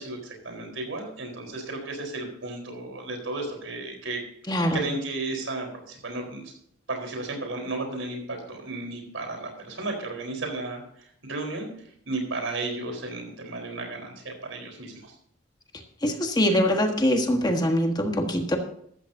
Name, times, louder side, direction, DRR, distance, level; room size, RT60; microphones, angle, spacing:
voice 1, 0.0-4.2 4.7-6.5 6.9-11.7 12.1-15.1, right 2 dB, 90° right, 2 dB, 4.2 m, -34 dB
voice 2, 4.5-4.8 16.0-18.6, equal, 20° left, 4 dB, 1.4 m, -23 dB
14.0 x 13.5 x 2.7 m, 0.67 s
head